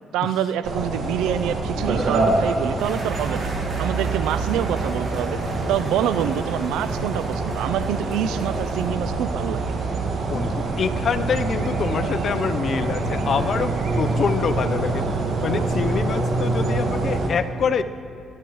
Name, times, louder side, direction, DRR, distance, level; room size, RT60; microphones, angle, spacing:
voice 1, 0.1-3.5 3.8-5.4 5.7-9.7, right 10 dB, 85° right, 13 dB, 0.4 m, -26 dB
sound 1, 0.6-17.3, right 3 dB, 65° right, 1.8 m, -25 dB
sound 2, 2.8-8.9, right 2 dB, 40° right, 3.0 m, -42 dB
voice 2, 10.3-15.0 15.4-17.8, left 6 dB, 60° left, 11 dB, 0.6 m, -25 dB
21.5 x 10.5 x 3.1 m, 2.3 s
supercardioid pair, 65°, 0 cm